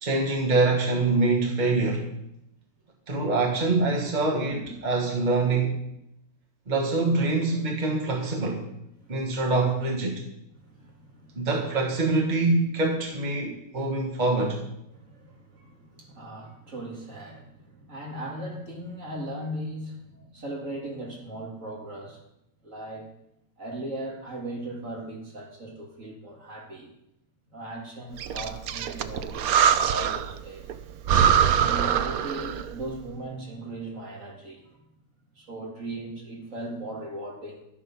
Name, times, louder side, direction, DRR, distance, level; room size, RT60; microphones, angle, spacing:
voice 1, 0.0-2.1 3.1-5.7 6.7-8.7 9.1-10.2 11.4-14.6, right 3 dB, 30° right, 0 dB, 1.7 m, -25 dB
voice 2, 9.0-9.4 10.6-11.5 14.9-22.2 22.6-23.1 23.6-26.9 27.5-30.7 31.5-34.8 35.3-37.6, right 1 dB, 60° right, -1 dB, 2.9 m, -38 dB
Breathing, 28.2-30.4 30.7-30.8 31.1-32.7, right 8 dB, 75° right, 1.1 m, -23 dB
12.0 x 8.7 x 5.9 m, 0.79 s
omnidirectional pair, 1.6 m